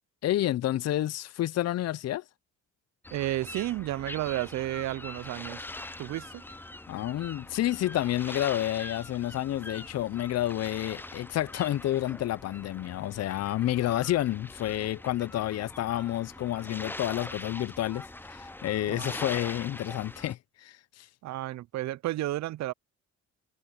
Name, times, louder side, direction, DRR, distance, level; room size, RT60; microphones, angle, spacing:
voice 1, 0.2-2.2 6.9-21.1, left 13 dB, 55° left, 0.6 m, -30 dB
sound 1, 3.0-20.3, left 2 dB, 5° left, 0.5 m, -43 dB
voice 2, 3.1-5.7 6.0-6.4 18.8-19.2 21.2-22.7, right 15 dB, 65° right, 0.5 m, -32 dB
cardioid pair, 90°, 30 cm